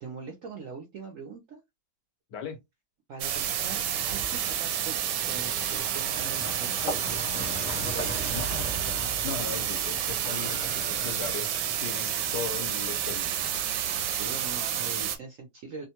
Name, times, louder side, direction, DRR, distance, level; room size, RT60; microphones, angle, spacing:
voice 1, 0.0-1.6 3.1-5.0 5.2-7.6 7.9-8.4 10.2-11.2 14.2-15.9, right 4 dB, 65° right, 0.9 m, -42 dB
voice 2, 2.3-2.6 8.3-8.5 9.2-13.4, left 6 dB, 75° left, 1.7 m, -38 dB
sound 1, 3.2-15.2, right 10 dB, 80° right, 1.2 m, -30 dB
sound 2, 3.3-15.2, equal, 60° left, 1.0 m, -40 dB
3.5 x 2.2 x 2.8 m
omnidirectional pair, 1.8 m